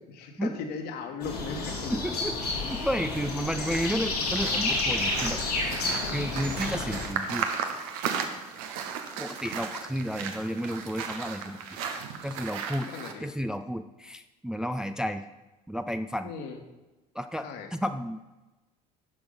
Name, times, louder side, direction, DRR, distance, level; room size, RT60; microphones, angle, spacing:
voice 1, 0.2-1.9 12.9-13.2 16.2-16.6 17.4-17.7, left 5 dB, 55° left, 4 dB, 1.6 m, -37 dB
sound 1, 1.2-7.1, left 3 dB, 80° left, 2.0 m, -30 dB
voice 2, 1.9-2.4 2.6-5.4 6.1-7.5 9.2-11.7 12.2-12.9 13.2-15.2 15.7-16.3 17.1-18.2, equal, 5° right, 8 dB, 0.5 m, -32 dB
sound 2, 3.0-13.1, right 6 dB, 65° right, 1.1 m, -36 dB
11.0 x 6.2 x 5.5 m, 1.1 s
figure-of-eight pair, 55°, 20 cm